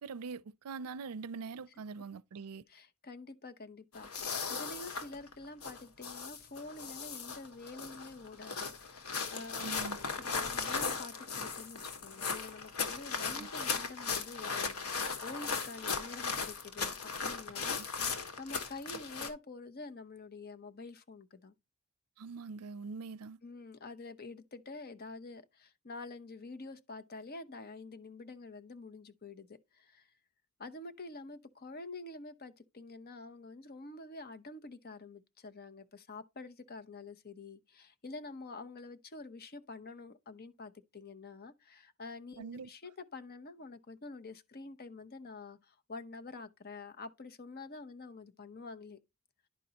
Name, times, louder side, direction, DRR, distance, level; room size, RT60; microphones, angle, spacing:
voice 1, 0.0-2.6 9.6-10.0 17.8-17.9 22.2-23.4 42.4-42.7, right 4 dB, 85° right, 0.4 m, -43 dB
voice 2, 2.7-17.8 18.1-21.5 23.4-30.1 30.6-49.0, left 3 dB, 45° left, 0.8 m, -48 dB
sound 1, 3.9-19.3, left 5 dB, 80° left, 1.4 m, -37 dB
10.5 x 5.2 x 2.9 m
head